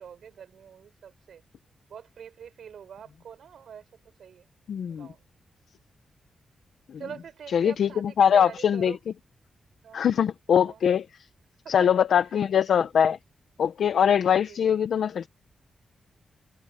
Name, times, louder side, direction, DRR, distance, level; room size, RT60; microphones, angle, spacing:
voice 1, 0.0-1.4 1.9-3.9 4.2-4.5 4.9-5.2 7.0-9.0 9.8-10.1 10.5-10.8 11.6-11.9 12.1-13.1 14.5-14.6, right 8 dB, 75° right, 6.0 m, -45 dB
voice 2, 4.7-5.1 6.9-7.0 7.5-9.0 9.9-11.1 11.7-13.2 13.6-15.3, left 8 dB, 75° left, 0.9 m, -22 dB
wide cardioid pair, 130°, 0 cm